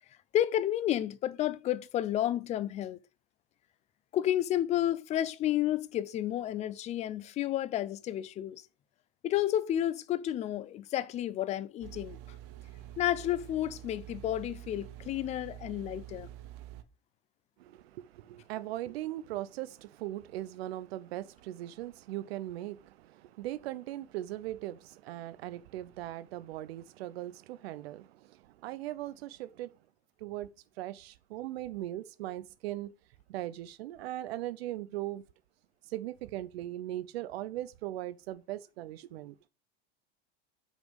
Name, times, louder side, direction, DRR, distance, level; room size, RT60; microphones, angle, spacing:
voice 1, 0.3-3.0 4.1-8.6 9.2-12.2 13.0-16.3, left 12 dB, 25° left, 0.4 m, -31 dB
sound 1, 11.8-16.8, right 13 dB, 45° right, 0.8 m, -47 dB
voice 2, 17.6-29.7 30.2-30.5 30.8-32.9 33.3-35.2 35.8-39.3, right 14 dB, 85° right, 0.6 m, -39 dB
6.2 x 5.3 x 5.2 m
supercardioid pair, 140°, 30 cm